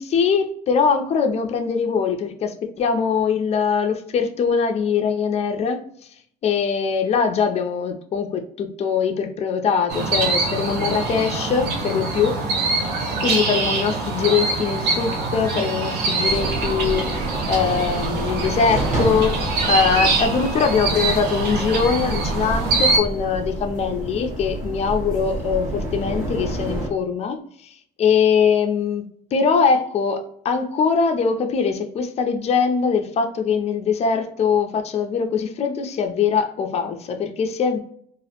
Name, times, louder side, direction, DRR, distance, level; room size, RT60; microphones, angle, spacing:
voice 1, 0.0-5.8 6.4-12.4 13.2-27.4 27.6-29.0 29.3-37.8, left 6 dB, 40° left, 5 dB, 0.4 m, -22 dB
sound 1, 9.9-23.0, right 3 dB, 75° right, 0.6 m, -24 dB
sound 2, 16.3-26.9, right 1 dB, 45° right, 1.0 m, -29 dB
2.4 x 2.0 x 2.8 m, 0.64 s
cardioid pair, 110°, 17 cm